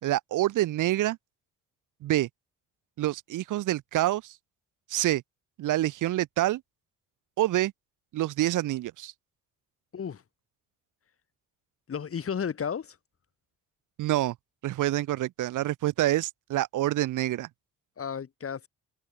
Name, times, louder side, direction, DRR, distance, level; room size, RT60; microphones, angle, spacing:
voice 1, 0.0-1.2 2.0-2.3 3.0-4.3 4.9-5.2 5.6-6.6 7.4-7.7 8.1-9.1 14.0-14.3 14.6-17.5, right 15 dB, 85° right, 4.0 m, -27 dB
voice 2, 11.9-13.0 18.0-18.7, left 7 dB, 50° left, 5.7 m, -33 dB
cardioid pair, 90°, 30 cm